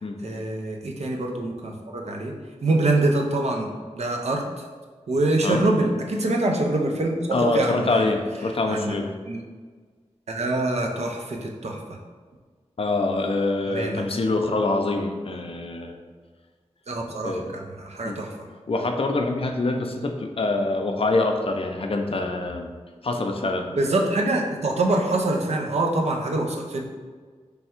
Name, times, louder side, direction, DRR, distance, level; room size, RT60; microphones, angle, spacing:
voice 1, 0.2-2.3 2.6-3.7 3.9-4.4 5.1-8.1 8.7-8.9 9.3-9.4 10.3-11.8 13.7-14.0 16.9-18.3 23.7-26.8, right 2 dB, 65° right, 1 dB, 0.6 m, -25 dB
voice 2, 7.3-9.1 12.8-16.0 17.2-17.5 18.0-18.2 18.7-22.7 23.0-23.7, left 2 dB, 50° left, 4 dB, 0.5 m, -25 dB
3.3 x 2.3 x 4.3 m, 1.5 s
cardioid pair, 45°, 12 cm